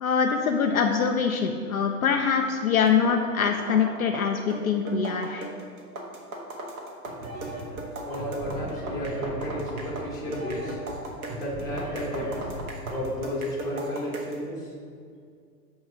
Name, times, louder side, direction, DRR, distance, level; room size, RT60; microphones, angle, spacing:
voice 1, 0.0-5.5, left 6 dB, 60° left, 3 dB, 0.6 m, -24 dB
sound 1, 2.9-14.4, right 2 dB, 60° right, 1.4 m, -38 dB
sound 2, 7.1-13.1, right 1 dB, 20° right, 0.7 m, -38 dB
voice 2, 8.0-10.8 11.3-12.3 12.9-14.7, equal, 5° left, -6 dB, 1.3 m, -32 dB
8.1 x 3.1 x 6.0 m, 2.2 s
hypercardioid pair, 135°, 49 cm